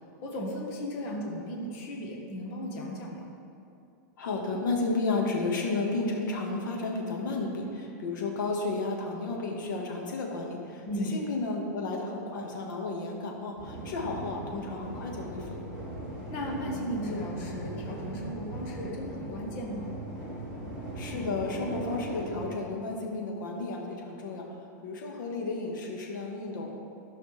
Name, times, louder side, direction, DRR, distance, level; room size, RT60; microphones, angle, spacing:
voice 1, 0.2-3.2 10.9-11.1 16.3-19.9, equal, 40° left, -1 dB, 1.5 m, -36 dB
voice 2, 4.2-15.6 20.9-24.6 24.8-26.8, left 3 dB, 85° left, 0 dB, 1.6 m, -32 dB
sound 1, 13.6-22.5, right 1 dB, 10° right, 2.1 m, -39 dB
13.5 x 5.7 x 3.4 m, 2.6 s
supercardioid pair, 160°, 10 cm